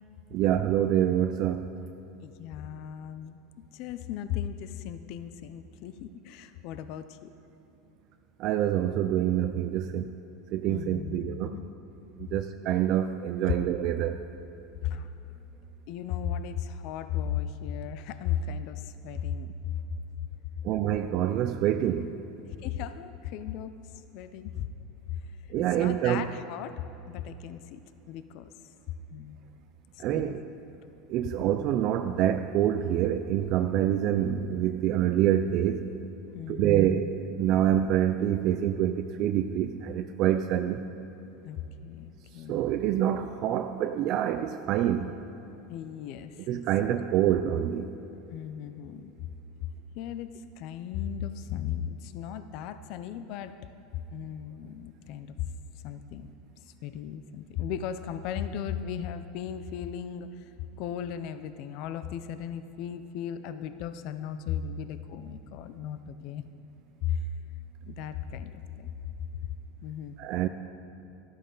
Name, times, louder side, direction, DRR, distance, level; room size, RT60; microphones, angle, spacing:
voice 1, 0.3-1.6 8.4-10.0 10.5-11.5 12.3-14.1 20.6-22.1 25.5-26.3 30.0-30.4 31.1-35.8 36.5-37.1 37.4-40.8 42.5-45.1 46.5-47.8 70.2-70.5, right 11 dB, 50° right, 8 dB, 0.4 m, -26 dB
voice 2, 2.2-7.3 10.7-11.7 13.5-13.6 14.8-15.1 15.9-20.0 20.8-21.0 22.6-23.7 24.1-24.7 25.1-25.2 25.6-26.8 27.1-27.8 28.1-28.5 29.1-29.4 30.1-30.3 36.3-37.0 41.4-42.6 45.7-47.0 48.3-49.1 50.0-53.5 54.1-55.4 55.8-56.3 56.8-60.5 60.8-66.4 67.0-67.3 67.9-68.9 69.8-70.2, left 9 dB, 55° left, 11 dB, 0.5 m, -36 dB
13.0 x 12.5 x 3.9 m, 3.0 s
supercardioid pair, 135°, 0 cm